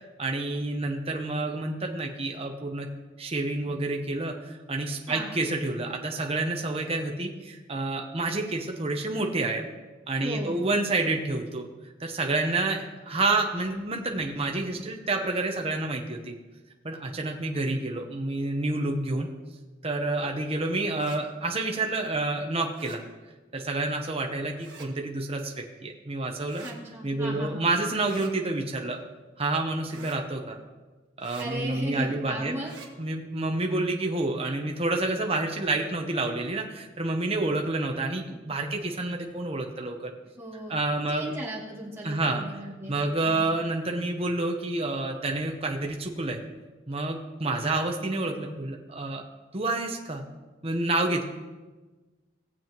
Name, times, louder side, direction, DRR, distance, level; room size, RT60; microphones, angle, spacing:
voice 1, 0.2-2.9 3.2-9.6 10.1-11.7 12.0-16.3 16.8-19.3 19.8-23.0 23.5-26.7 27.0-29.0 29.4-30.6 31.2-32.6 33.0-40.1 40.7-41.3 42.0-42.4 42.9-46.4 46.9-49.2 49.5-50.2 50.6-51.2, right 2 dB, 30° right, 2 dB, 0.9 m, -29 dB
voice 2, 10.2-10.6 26.6-27.6 31.4-32.7 40.4-40.7 41.1-43.0 43.3-43.5, equal, 15° right, -5 dB, 2.5 m, -36 dB
sound 1, 20.9-21.2 22.7-23.0 24.6-24.9 26.5-26.8 28.0-28.3 29.9-30.2 31.2-31.5 32.6-32.9, right 4 dB, 65° right, 1.7 m, -46 dB
18.5 x 7.6 x 3.0 m, 1.2 s
head